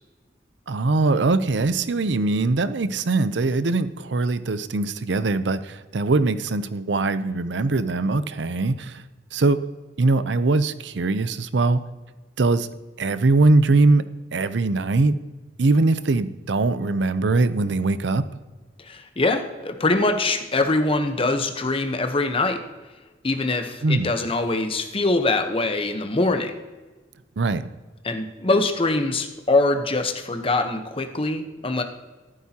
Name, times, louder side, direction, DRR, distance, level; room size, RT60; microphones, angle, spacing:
voice 1, 0.7-9.0 9.3-9.6 10.0-11.8 12.4-12.7 13.0-14.0 14.3-15.2 15.6-18.2 23.8-24.1 27.4-27.6, right 3 dB, 80° right, 13 dB, 0.6 m, -21 dB
voice 2, 18.8-22.6 23.2-26.5 28.0-31.8, left 2 dB, 30° left, 6 dB, 0.9 m, -23 dB
14.0 x 12.0 x 2.9 m, 1.3 s
head